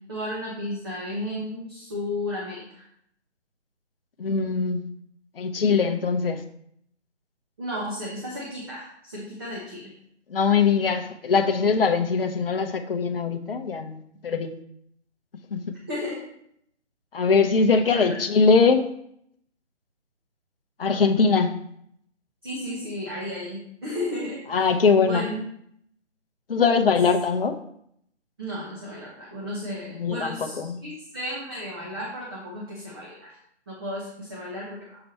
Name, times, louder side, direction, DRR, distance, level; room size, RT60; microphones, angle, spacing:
voice 1, 0.1-2.8 7.6-9.9 15.9-16.2 17.9-18.2 22.4-25.4 28.4-33.4 33.7-35.0, left 1 dB, 20° right, -5 dB, 1.0 m, -34 dB
voice 2, 4.2-4.9 5.4-6.4 10.3-14.6 15.5-15.6 17.1-18.9 20.8-21.5 24.5-25.3 26.5-27.6 29.9-30.8, left 5 dB, 55° left, 7 dB, 0.7 m, -22 dB
6.8 x 4.5 x 4.0 m, 0.70 s
hypercardioid pair, 170°, 35 cm